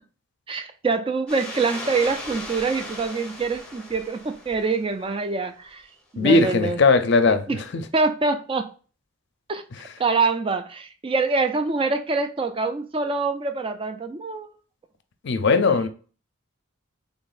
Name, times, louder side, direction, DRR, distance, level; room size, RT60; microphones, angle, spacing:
voice 1, 0.5-5.8 6.1-6.8 7.9-8.7 9.5-9.6 10.0-14.5, right 4 dB, 25° right, 0.3 m, -25 dB
sound 1, 1.3-5.0, left 1 dB, 5° left, 0.9 m, -37 dB
voice 2, 6.2-7.9 9.7-9.9 15.2-15.9, left 3 dB, 55° left, 0.5 m, -19 dB
3.9 x 3.5 x 2.4 m
head